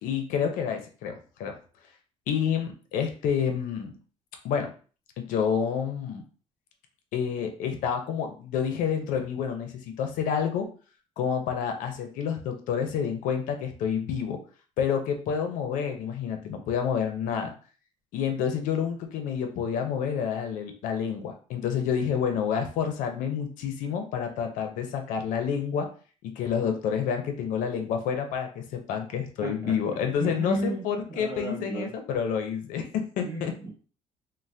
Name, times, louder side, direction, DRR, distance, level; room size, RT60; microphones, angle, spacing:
voice 1, 0.0-1.1 1.4-1.5 2.3-3.9 4.4-4.7 5.2-6.2 7.1-10.7 11.2-14.4 14.8-17.5 18.1-25.9 26.2-33.5, left 7 dB, 85° left, 5 dB, 0.6 m, -29 dB
voice 2, 29.4-29.8 30.2-30.8 31.1-31.9 33.2-33.7, right 2 dB, 20° right, -3 dB, 0.8 m, -34 dB
2.6 x 2.1 x 3.2 m, 0.39 s
cardioid pair, 180°, 13 cm